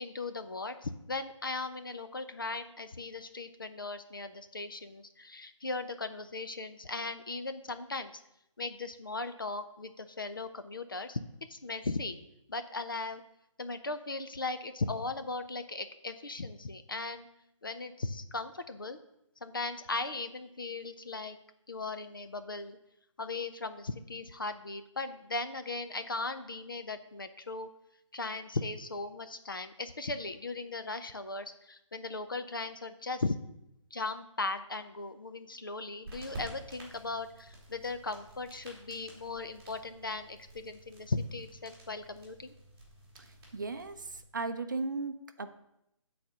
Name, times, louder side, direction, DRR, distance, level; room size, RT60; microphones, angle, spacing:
voice 1, 0.0-8.2 8.6-11.2 11.5-12.2 12.5-13.2 13.6-17.3 17.6-19.0 19.4-21.4 21.7-22.8 23.2-27.7 28.1-33.4 33.9-42.5, left 3 dB, 40° left, 9 dB, 0.5 m, -38 dB
sound 1, 36.0-44.2, right 1 dB, 10° right, 1.7 m, -51 dB
voice 2, 43.5-45.5, right 3 dB, 40° right, 9 dB, 0.6 m, -36 dB
8.7 x 4.2 x 6.1 m, 0.82 s
hypercardioid pair, 180°, 16 cm